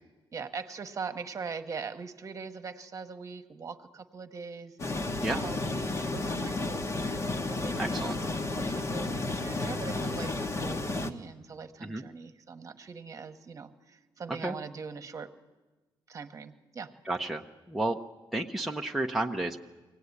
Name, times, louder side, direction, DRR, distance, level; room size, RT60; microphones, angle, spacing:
voice 1, 0.3-8.0 8.5-15.3 16.1-16.9, right 5 dB, 40° right, 8 dB, 1.1 m, -41 dB
sound 1, 4.8-11.1, left 2 dB, 35° left, 1.1 m, -32 dB
voice 2, 7.8-8.2 11.8-12.0 14.4-14.6 17.1-18.0 18.3-19.6, right 2 dB, ahead, 0 dB, 0.7 m, -31 dB
23.5 x 17.5 x 9.7 m, 1.2 s
wide cardioid pair, 165°, 9 cm